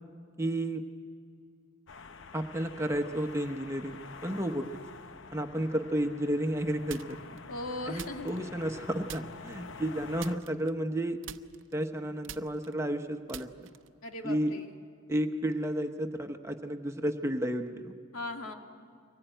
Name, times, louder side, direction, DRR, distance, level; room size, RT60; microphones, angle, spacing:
voice 1, 0.4-0.8 2.3-4.7 5.3-7.2 7.9-11.2 11.7-13.7 14.2-14.5 15.1-17.9, right 1 dB, 15° right, 5 dB, 0.9 m, -32 dB
sound 1, 1.9-10.4, left 4 dB, 65° left, 0.7 m, -47 dB
sound 2, 6.9-7.4 8.0-8.8 9.1-9.6 10.2-11.0 11.2-14.0, right 9 dB, 65° right, 0.7 m, -46 dB
voice 2, 7.5-8.3 14.0-14.7 18.1-18.5, left 2 dB, 90° left, 3 dB, 2.1 m, -38 dB
24.0 x 20.5 x 9.1 m, 2.4 s
head